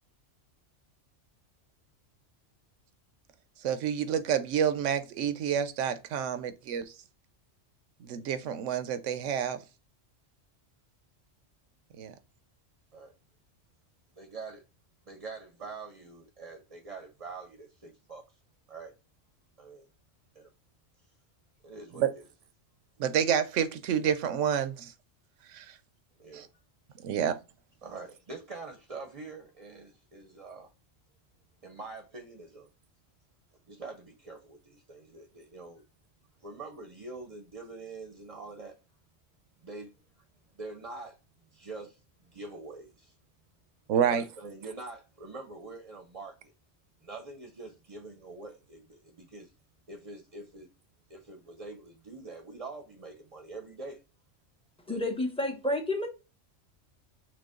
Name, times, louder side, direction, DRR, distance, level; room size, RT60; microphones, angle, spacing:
voice 1, 3.6-6.9 8.0-9.6 12.0-12.1 22.0-22.1 23.0-24.9 25.5-25.7 26.3-26.5 27.0-27.4 43.9-44.2, right 8 dB, 90° right, 1.0 m, -28 dB
voice 2, 14.2-14.6 15.0-18.2 18.7-18.9 19.6-19.9 20.3-20.5 21.6-22.2 26.2-26.5 27.8-30.7 31.6-32.7 33.7-35.8 36.4-38.8 39.6-39.9 40.2-40.3 40.5-41.2 41.5-43.1 43.9-46.5 47.0-49.5 49.9-50.7 51.1-54.0 54.9-55.1, right 3 dB, 40° right, 0.6 m, -45 dB
voice 3, 54.9-56.1, left 1 dB, 5° left, 0.6 m, -30 dB
6.2 x 2.3 x 3.6 m
omnidirectional pair, 1.2 m